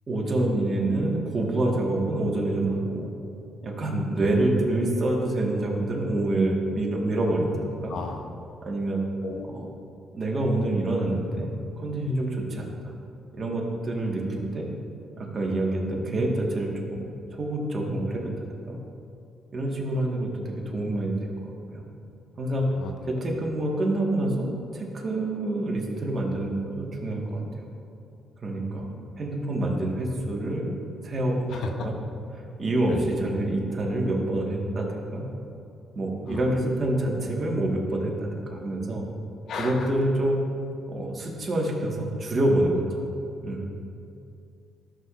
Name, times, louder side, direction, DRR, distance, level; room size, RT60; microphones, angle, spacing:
voice 1, 0.1-3.1 3.6-7.6 7.8-7.9 8.6-9.0 9.4-9.7 10.1-12.9 13.3-14.7 15.2-17.1 17.3-18.3 18.7-18.8 19.5-21.8 22.4-22.7 23.2-27.6 28.4-28.9 29.2-30.7 31.0-31.9 32.3-35.3 35.9-39.0 39.5-40.4 40.9-43.0 43.4-43.6, right 1 dB, 40° right, -1 dB, 1.6 m, -27 dB
voice 2, 7.9-8.3 9.2-9.5 22.8-23.1 28.5-29.1 31.5-31.8 32.9-33.2 36.3-36.4 39.5-39.9, left 4 dB, 70° left, 4 dB, 0.8 m, -35 dB
13.5 x 6.5 x 2.5 m, 2.6 s
cardioid pair, 90°, 0 cm